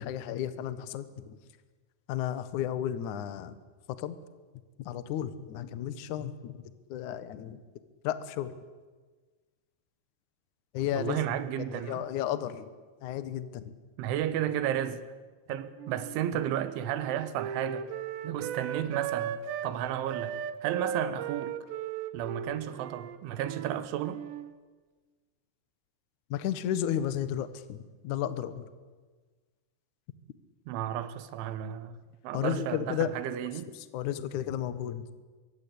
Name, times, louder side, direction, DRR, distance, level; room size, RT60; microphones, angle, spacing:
voice 1, 0.0-1.4 2.1-3.6 3.9-4.2 4.8-6.6 6.9-7.6 8.0-8.5 10.7-11.2 11.6-12.7 13.0-13.7 26.3-28.7 32.3-33.2 33.9-35.1, left 10 dB, 65° left, 2.0 m, -33 dB
voice 2, 11.0-12.1 14.0-15.1 15.5-17.9 18.2-21.6 22.1-24.2 30.7-32.0 32.2-33.7, right 11 dB, 90° right, 3.7 m, -33 dB
Wind instrument woodwind instrument, 15.8-19.7 20.1-24.5, right 8 dB, 75° right, 3.2 m, -37 dB
25.5 x 23.0 x 8.6 m
omnidirectional pair, 5.3 m